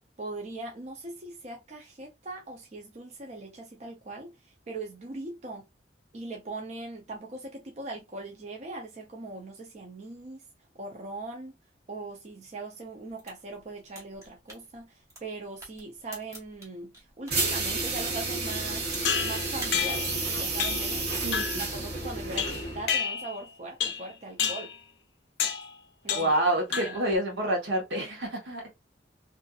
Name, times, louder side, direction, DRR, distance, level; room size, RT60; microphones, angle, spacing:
voice 1, 0.2-4.3 4.7-5.6 6.1-10.4 10.7-11.5 11.9-18.9 19.2-21.0 21.7-24.7 26.0-26.3 26.8-27.0, right 2 dB, 40° right, 0.5 m, -40 dB
sound 1, 13.1-17.5 17.9-19.2 19.5-19.8, right 1 dB, 15° right, 1.0 m, -46 dB
sound 2, 17.3-22.9, right 3 dB, 55° right, 1.3 m, -31 dB
sound 3, 19.0-20.2 20.6-20.9 21.3-21.7 22.4-23.4 23.8-24.1 24.4-24.8 25.4-25.7 26.1-26.4 26.7-27.1, left 7 dB, 70° left, 0.5 m, -30 dB
voice 2, 21.2-21.6 26.1-28.7, right 1 dB, 80° right, 1.1 m, -28 dB
2.5 x 2.4 x 2.3 m
head